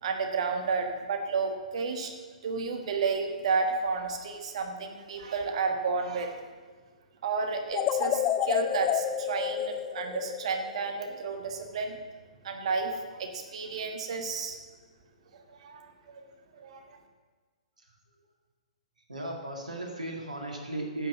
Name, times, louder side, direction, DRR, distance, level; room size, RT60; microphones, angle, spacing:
voice 1, 0.0-2.1 2.4-6.4 7.2-12.0 12.4-14.6 15.3-16.2 16.5-16.8, right 4 dB, 55° right, 5 dB, 1.5 m, -31 dB
sound 1, 7.7-10.9, left 10 dB, 25° left, 0.4 m, -29 dB
voice 2, 19.1-21.1, right 2 dB, 90° right, 1 dB, 1.9 m, -36 dB
9.8 x 5.5 x 7.2 m, 1.5 s
hypercardioid pair, 125°, 4 cm